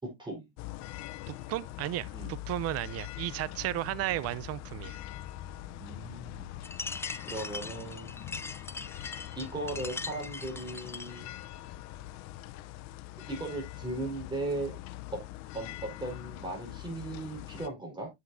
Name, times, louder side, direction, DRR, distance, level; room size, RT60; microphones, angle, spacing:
voice 1, 0.0-0.5 2.1-2.3 5.8-6.5 7.2-8.3 9.3-11.3 13.3-14.7 15.5-18.1, right 2 dB, 15° right, 4.6 m, -37 dB
sound 1, 0.6-17.7, left 15 dB, 60° left, 0.8 m, -43 dB
voice 2, 1.3-5.0, right 15 dB, 50° right, 0.7 m, -34 dB
sound 2, 6.6-11.2, left 3 dB, 10° left, 0.4 m, -41 dB
8.0 x 8.0 x 2.7 m
supercardioid pair, 115°, 30 cm